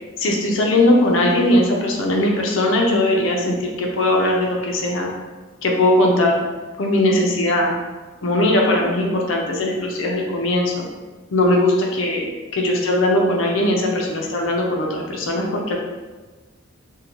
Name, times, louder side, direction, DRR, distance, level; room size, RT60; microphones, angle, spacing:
voice 1, 0.2-5.1 5.6-6.5 6.8-7.8 8.2-10.8 11.3-15.8, left 1 dB, 70° left, 0 dB, 0.5 m, -19 dB
2.7 x 2.1 x 2.8 m, 1.3 s
head